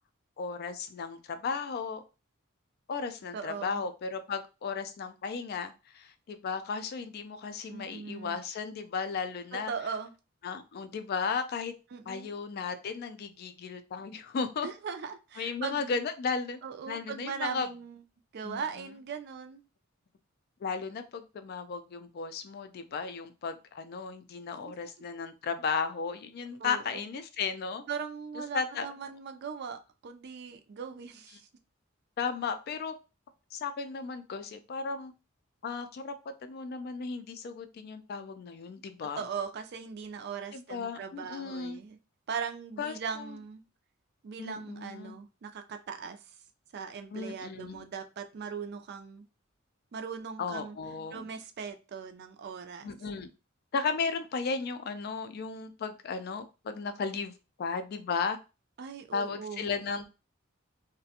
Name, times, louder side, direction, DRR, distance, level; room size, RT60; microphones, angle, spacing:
voice 1, 0.4-2.0 2.9-9.7 10.4-11.7 12.1-14.7 15.4-16.6 16.9-17.7 18.4-18.6 20.6-27.9 28.5-28.9 32.2-32.9 33.5-35.1 35.6-36.1 36.4-39.3 40.5-41.8 42.8-43.4 44.4-45.1 47.1-47.9 50.4-51.3 52.8-53.3 53.7-57.3 57.6-58.4 59.1-60.1, left 5 dB, 50° left, 9 dB, 0.3 m, -35 dB
voice 2, 3.3-3.8 7.7-8.4 9.5-10.1 11.9-12.3 14.6-16.0 16.6-18.0 18.3-19.6 24.5-24.6 26.6-27.0 27.9-31.5 39.0-42.0 42.3-43.6 44.2-46.3 46.7-49.2 49.9-50.8 51.1-52.9 58.8-59.7, right 6 dB, 55° right, 7 dB, 0.4 m, -39 dB
2.4 x 2.1 x 2.7 m, 0.30 s
head